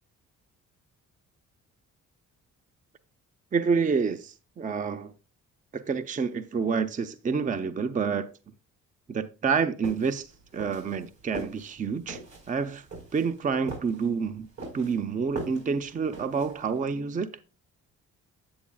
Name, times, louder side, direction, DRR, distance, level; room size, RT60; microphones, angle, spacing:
voice 1, 3.5-5.1 5.7-8.3 9.1-12.2 12.5-12.9 13.1-14.5 14.7-17.3, right 5 dB, 25° right, 0.5 m, -28 dB
sound 1, 9.8-16.8, right 2 dB, 70° right, 4.4 m, -41 dB
8.6 x 8.4 x 2.3 m
cardioid pair, 90°, 30 cm